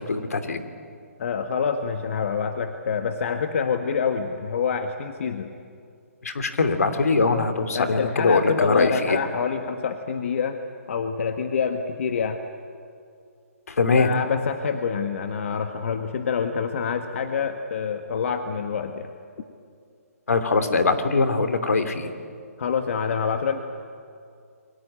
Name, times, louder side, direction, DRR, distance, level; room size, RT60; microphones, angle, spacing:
voice 1, 0.1-0.6 6.2-9.2 13.7-14.1 20.3-22.1, left 4 dB, 75° left, 8 dB, 3.0 m, -22 dB
voice 2, 1.2-5.5 7.7-10.6 10.9-12.4 14.0-19.1 22.6-23.6, left 6 dB, 55° left, 6 dB, 1.7 m, -26 dB
29.0 x 23.0 x 8.9 m, 2.3 s
hypercardioid pair, 150°, 8 cm